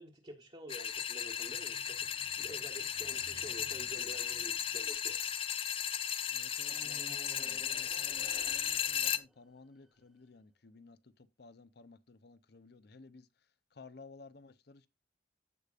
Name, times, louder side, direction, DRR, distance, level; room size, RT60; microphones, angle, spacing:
voice 1, 0.0-2.1 2.4-5.2, right 1 dB, 35° right, 1.3 m, -49 dB
sound 1, 0.7-9.2, left 9 dB, 30° left, 0.4 m, -36 dB
sound 2, 1.2-5.9 6.6-10.0, equal, ahead, 0.8 m, -57 dB
voice 2, 6.3-14.9, left 3 dB, 65° left, 0.7 m, -56 dB
15.0 x 5.0 x 2.5 m
head